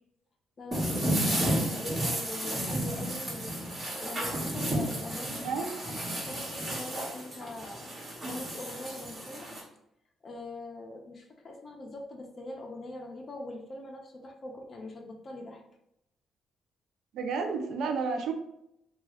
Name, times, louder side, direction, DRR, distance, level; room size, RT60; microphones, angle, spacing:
voice 1, 0.6-3.6 3.9-5.5 5.9-6.0 6.3-7.9 8.2-9.5 10.2-15.6, left 2 dB, 40° left, 2 dB, 0.6 m, -42 dB
sound 1, 0.7-9.6, right 1 dB, 35° right, 1.2 m, -32 dB
voice 2, 5.4-5.7 17.1-18.3, right 5 dB, 75° right, 4 dB, 0.4 m, -31 dB
2.7 x 2.3 x 3.0 m, 0.80 s
cardioid pair, 90°, 0 cm